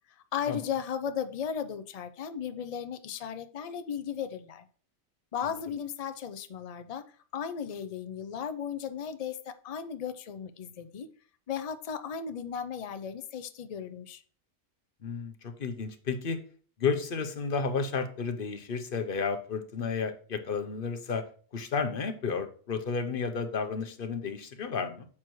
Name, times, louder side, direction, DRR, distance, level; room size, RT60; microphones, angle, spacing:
voice 1, 0.3-4.6 5.3-7.0 7.3-11.1 11.5-14.2, left 8 dB, 85° left, 10 dB, 0.3 m, -36 dB
voice 2, 15.0-16.4 16.8-21.2 21.5-25.1, left 5 dB, 45° left, 9 dB, 0.9 m, -32 dB
9.0 x 7.3 x 3.1 m, 0.43 s
omnidirectional pair, 1.5 m